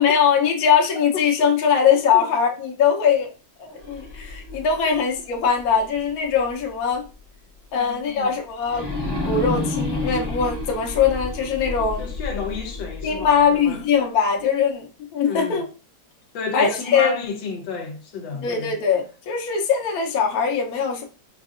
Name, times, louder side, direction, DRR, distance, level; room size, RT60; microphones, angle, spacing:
voice 1, 0.0-3.3 3.6-7.0 7.7-8.9 9.2-12.1 13.0-15.6 16.5-17.1 18.3-21.0, left 7 dB, 60° left, 1.2 m, -21 dB
sound 1, 3.7-6.7 7.1-7.2 8.6-13.7, left 2 dB, 20° left, 0.6 m, -30 dB
voice 2, 7.7-8.3 12.0-13.8 15.2-15.6 16.3-18.7, left 4 dB, 80° left, 1.4 m, -31 dB
5.5 x 2.6 x 2.4 m
omnidirectional pair, 2.0 m